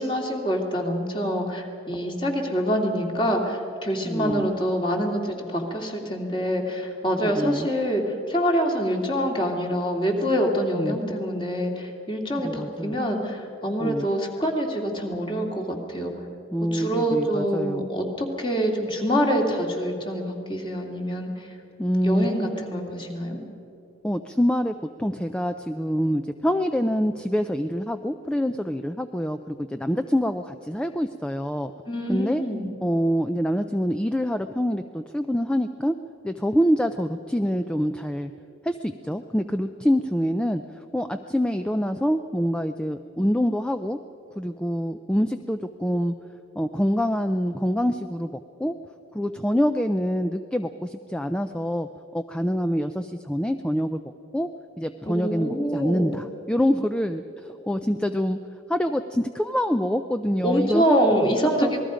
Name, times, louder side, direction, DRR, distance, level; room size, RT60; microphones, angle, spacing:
voice 1, 0.0-16.1 16.7-21.5 22.0-23.4 31.8-32.7 55.1-56.2 60.4-61.8, equal, 25° left, 1 dB, 2.4 m, -25 dB
voice 2, 4.0-4.5 7.2-7.7 10.8-11.0 12.4-13.0 13.8-14.1 16.5-17.9 21.8-22.3 24.0-31.7 32.1-32.4 32.8-35.9 36.2-38.3 38.6-44.0 44.4-46.1 46.6-48.7 49.1-54.0 54.3-54.5 54.8-58.4 58.7-61.0 61.6-61.8, equal, 5° left, 8 dB, 0.4 m, -26 dB
27.0 x 20.0 x 5.1 m, 2.8 s
head